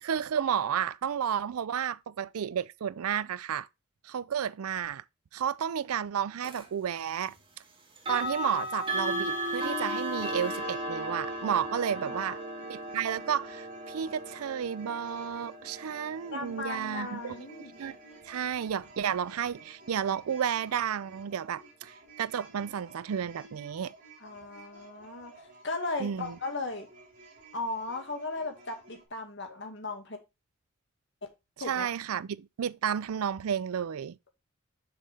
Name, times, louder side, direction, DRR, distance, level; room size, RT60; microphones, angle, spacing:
voice 1, 0.0-3.7 4.0-5.0 5.3-7.3 8.1-12.4 12.7-17.3 17.8-18.0 18.2-23.9 26.0-26.4 31.6-34.2, right 8 dB, 90° right, 0.4 m, -32 dB
sound 1, 6.4-6.7 8.0-18.8, right 1 dB, 25° right, 1.9 m, -36 dB
sound 2, 9.3-29.1, right 3 dB, 40° right, 2.9 m, -54 dB
voice 2, 12.0-12.4 16.3-17.8 24.2-26.9 27.5-30.2 31.6-31.9, left 3 dB, 55° left, 2.1 m, -37 dB
6.8 x 5.6 x 3.4 m
head